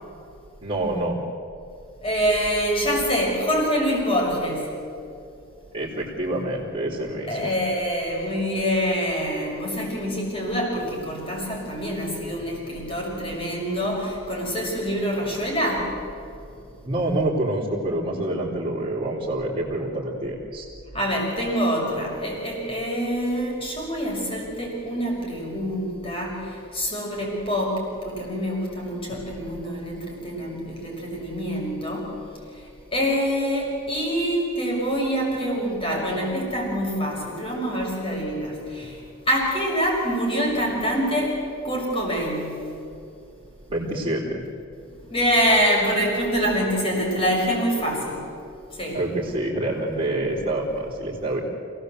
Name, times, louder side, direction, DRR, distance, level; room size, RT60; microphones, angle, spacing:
voice 1, 0.6-1.2 5.7-7.5 16.8-20.6 43.7-44.4 48.9-51.4, right 1 dB, 25° right, -7 dB, 3.9 m, -27 dB
voice 2, 2.0-4.7 7.3-15.9 20.9-32.2 32.9-39.0 39.3-42.6 45.1-48.3 48.7-49.0, equal, 25° left, -1 dB, 6.2 m, -25 dB
28.0 x 18.0 x 8.1 m, 2.6 s
head